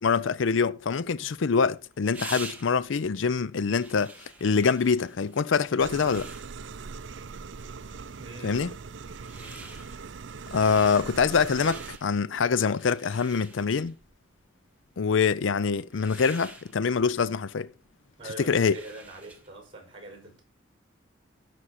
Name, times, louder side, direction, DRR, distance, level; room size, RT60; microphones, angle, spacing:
voice 1, 0.0-4.1 4.4-6.3 8.4-8.7 10.5-13.9 15.0-17.7 18.5-18.8, left 5 dB, 65° left, 0.5 m, -25 dB
sound 1, 1.1-19.6, right 3 dB, 5° right, 1.5 m, -48 dB
sound 2, 5.8-12.0, right 5 dB, 60° right, 0.5 m, -41 dB
voice 2, 8.2-8.7 9.3-9.8 18.2-20.4, right 2 dB, 25° right, 5.7 m, -44 dB
14.5 x 6.1 x 4.2 m
head